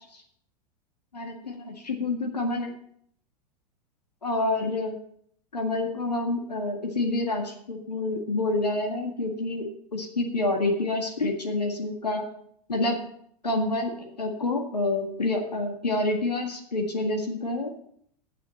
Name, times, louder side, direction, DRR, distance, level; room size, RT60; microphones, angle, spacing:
voice 1, 1.1-2.7 4.2-5.0 5.5-9.7 9.9-12.2 12.7-13.0 13.4-17.7, left 2 dB, 90° left, 2 dB, 1.8 m, -28 dB
9.4 x 7.0 x 7.0 m, 0.65 s
hypercardioid pair, 95°, 20 cm